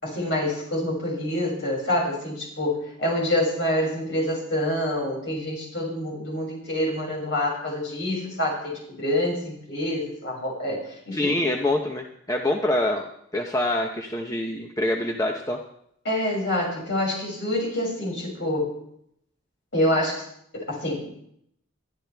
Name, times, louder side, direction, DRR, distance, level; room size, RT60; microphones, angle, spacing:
voice 1, 0.0-11.4 16.0-18.7 19.7-20.2 20.5-21.2, left 1 dB, 55° left, -3 dB, 6.8 m, -27 dB
voice 2, 11.1-15.6, left 1 dB, 15° left, 2 dB, 0.9 m, -25 dB
22.5 x 12.0 x 3.5 m, 0.72 s
head